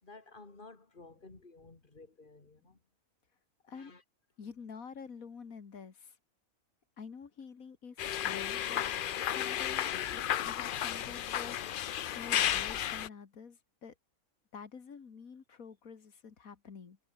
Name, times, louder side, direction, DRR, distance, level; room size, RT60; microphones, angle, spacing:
voice 1, 0.0-2.8 3.7-4.0, left 3 dB, 35° left, 3.1 m, -54 dB
voice 2, 4.4-6.2 7.0-8.9 9.2-13.9 14.5-17.0, left 6 dB, 90° left, 2.3 m, -48 dB
sound 1, 8.0-13.1, left 10 dB, 60° left, 0.5 m, -33 dB
omnidirectional pair, 1.4 m